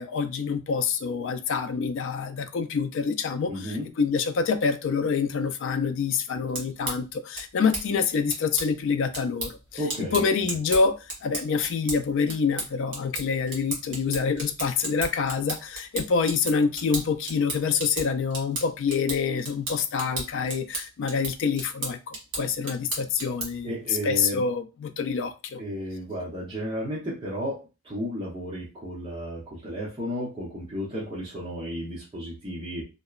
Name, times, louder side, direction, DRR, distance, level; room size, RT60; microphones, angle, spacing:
voice 1, 0.0-10.9 11.2-25.6, left 5 dB, 55° left, 0.3 m, -26 dB
voice 2, 3.5-3.9 9.8-10.2 23.6-24.4 25.6-27.6 27.8-32.8, equal, 20° right, 0.7 m, -33 dB
sound 1, 6.3-23.7, right 2 dB, 60° right, 1.1 m, -36 dB
2.8 x 2.0 x 2.3 m
head